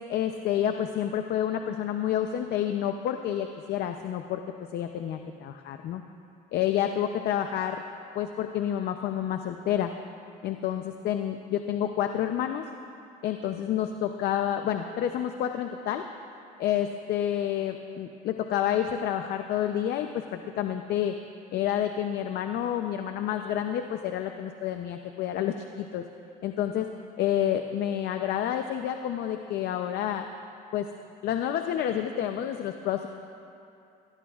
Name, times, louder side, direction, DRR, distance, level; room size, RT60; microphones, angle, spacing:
voice 1, 0.1-4.4 4.7-6.0 6.5-7.8 8.1-9.9 10.4-12.6 13.2-16.0 16.6-21.2 21.5-26.0 26.4-26.9 27.2-30.3 30.7-30.9 31.2-33.1, left 10 dB, 75° left, 6 dB, 0.6 m, -29 dB
22.5 x 17.5 x 2.4 m, 2.7 s
cardioid pair, 110°, 17 cm